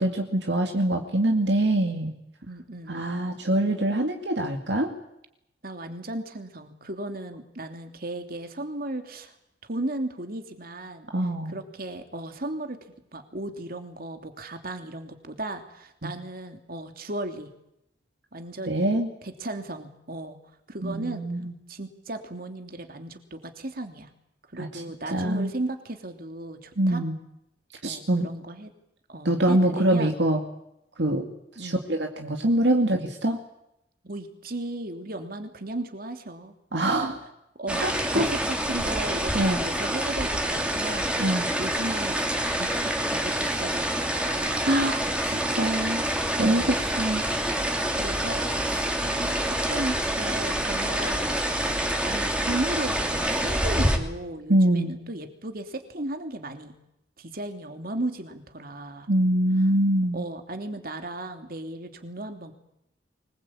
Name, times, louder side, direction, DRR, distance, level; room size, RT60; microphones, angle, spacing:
voice 1, 0.0-2.1 2.9-4.9 11.1-11.6 16.0-16.1 18.7-19.1 20.8-21.5 24.6-25.5 26.8-27.2 27.8-28.3 29.2-30.4 31.0-31.3 31.6-33.4 36.7-37.2 37.8-38.3 39.3-39.6 41.2-41.5 44.6-46.0 46.4-47.2 54.5-54.9 59.1-60.2, right 1 dB, 70° right, 3 dB, 2.4 m, -24 dB
voice 2, 2.5-3.1 5.6-9.3 9.7-11.1 11.5-12.8 13.1-17.5 18.3-18.9 19.2-20.4 20.7-21.3 21.7-24.1 24.5-27.0 27.8-28.7 29.1-30.1 31.6-31.8 34.0-37.0 37.5-41.3 41.6-44.8 46.4-46.8 47.9-56.7 57.2-59.1 60.1-62.5, right 1 dB, 55° right, 6 dB, 2.9 m, -36 dB
sound 1, 37.7-54.0, right 1 dB, 5° right, 2.9 m, -27 dB
24.5 x 21.0 x 8.7 m, 0.82 s
head